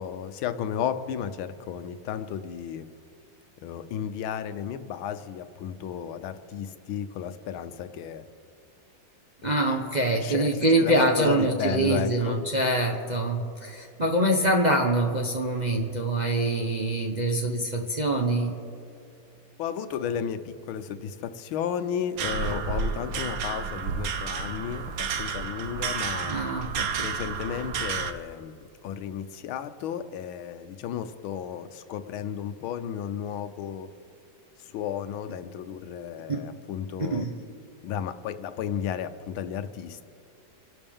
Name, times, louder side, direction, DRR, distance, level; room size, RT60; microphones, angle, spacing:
voice 1, 0.0-2.9 3.6-8.2 9.4-9.9 10.2-12.4 19.6-26.4 27.0-28.6 28.8-33.9 34.6-37.3 37.8-40.0, left 8 dB, 85° left, 10 dB, 1.6 m, -33 dB
voice 2, 9.4-18.5 26.2-27.1 36.3-36.4 37.0-37.3, right 1 dB, 35° right, 0 dB, 0.8 m, -25 dB
sound 1, 22.2-28.1, right 5 dB, 60° right, 1.0 m, -31 dB
27.5 x 12.0 x 3.6 m, 2.5 s
omnidirectional pair, 2.2 m